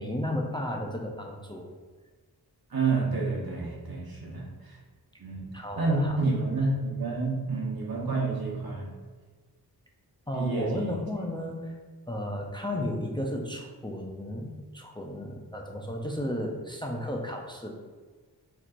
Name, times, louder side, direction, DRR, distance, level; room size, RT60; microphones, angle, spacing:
voice 1, 0.0-1.7 5.5-6.1 10.3-11.8 12.1-17.7, left 1 dB, 10° left, 0 dB, 0.5 m, -33 dB
voice 2, 2.7-4.8 5.2-5.5 5.8-8.9 10.3-11.0, right 3 dB, 65° right, -3 dB, 1.2 m, -29 dB
4.5 x 4.2 x 2.5 m, 1.4 s
wide cardioid pair, 90°, 38 cm